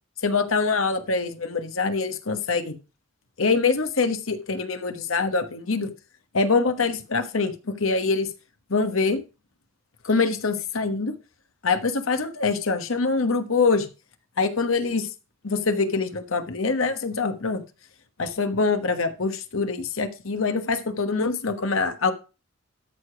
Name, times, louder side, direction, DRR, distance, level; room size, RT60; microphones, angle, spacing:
voice 1, 0.2-2.8 3.4-5.9 6.3-8.3 8.7-9.2 10.0-11.1 11.6-13.9 14.4-15.1 15.4-17.6 18.2-22.1, left 4 dB, 85° left, 8 dB, 1.2 m, -24 dB
13.0 x 5.0 x 4.9 m, 0.31 s
head